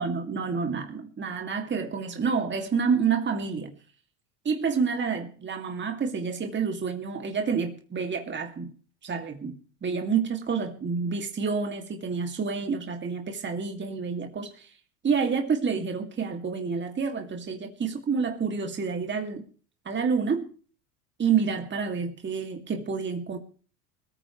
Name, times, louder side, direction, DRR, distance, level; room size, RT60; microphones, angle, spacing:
voice 1, 0.0-3.7 4.4-8.7 9.0-9.5 9.8-14.7 15.0-19.4 19.8-20.5 21.2-23.4, right 5 dB, 25° right, 4 dB, 2.7 m, -28 dB
20.5 x 14.0 x 3.3 m, 0.41 s
hypercardioid pair, 90°, 41 cm